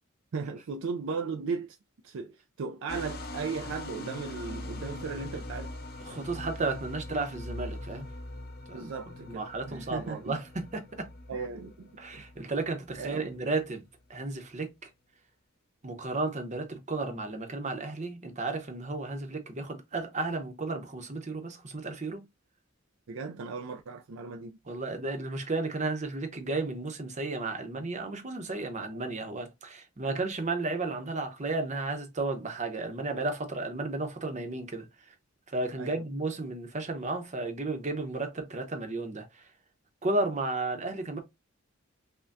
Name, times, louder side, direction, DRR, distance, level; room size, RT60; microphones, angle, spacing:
voice 1, 0.3-1.8 2.0-5.7 8.7-10.4 11.3-12.2 13.0-13.3 23.1-24.6 35.8-36.0, right 5 dB, 65° right, 0.4 m, -37 dB
sound 1, 2.9-13.7, left 1 dB, 50° left, 0.8 m, -42 dB
voice 2, 6.1-8.1 8.7-8.9 9.2-11.1 12.0-13.8 14.1-14.9 15.8-22.3 24.7-34.9 35.5-39.4 40.0-41.2, right 3 dB, 35° right, 0.8 m, -33 dB
5.6 x 2.2 x 2.6 m
head